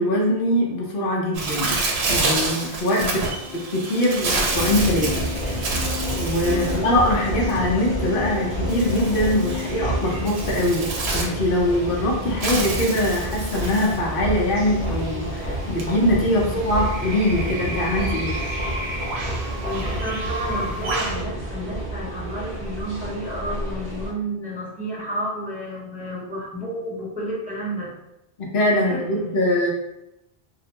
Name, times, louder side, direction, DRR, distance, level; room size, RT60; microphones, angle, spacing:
voice 1, 0.0-1.8 2.1-3.2 3.7-5.2 6.2-18.4 28.5-29.7, left 1 dB, 65° left, -3 dB, 0.8 m, -22 dB
Bird, 1.3-21.2, right 3 dB, 85° right, 0.8 m, -30 dB
sound 1, 3.4-10.2, left 10 dB, 80° left, 1.0 m, -34 dB
sound 2, 4.5-24.1, right 1 dB, 45° right, 0.9 m, -29 dB
voice 2, 19.6-27.9 28.8-29.5, right 1 dB, 10° right, -7 dB, 0.4 m, -31 dB
2.5 x 2.1 x 2.8 m, 0.89 s
omnidirectional pair, 1.0 m